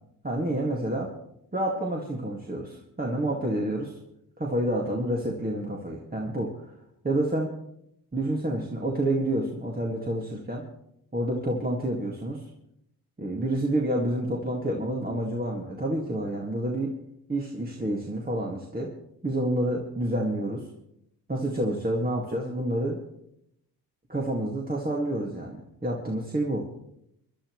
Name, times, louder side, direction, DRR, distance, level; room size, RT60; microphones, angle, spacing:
voice 1, 0.2-1.1 1.5-3.9 4.4-6.6 7.0-7.5 8.1-10.7 11.1-12.4 13.2-16.9 17.3-18.9 19.2-20.7 21.3-23.0 24.1-26.6, right 1 dB, 20° right, -2 dB, 2.1 m, -28 dB
24.0 x 11.5 x 3.2 m, 0.77 s
cardioid pair, 85°, 40 cm